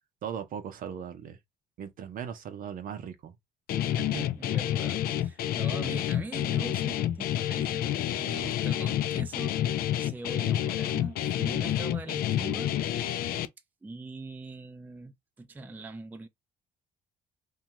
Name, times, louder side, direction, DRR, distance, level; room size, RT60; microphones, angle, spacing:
voice 1, 0.2-1.4 1.8-3.4, right 8 dB, 55° right, 0.7 m, -38 dB
Guitar, 3.7-13.5, left 11 dB, 60° left, 0.4 m, -29 dB
voice 2, 3.8-13.4 13.8-16.3, right 2 dB, 10° right, 0.4 m, -42 dB
2.6 x 2.3 x 2.9 m
cardioid pair, 110°, 17 cm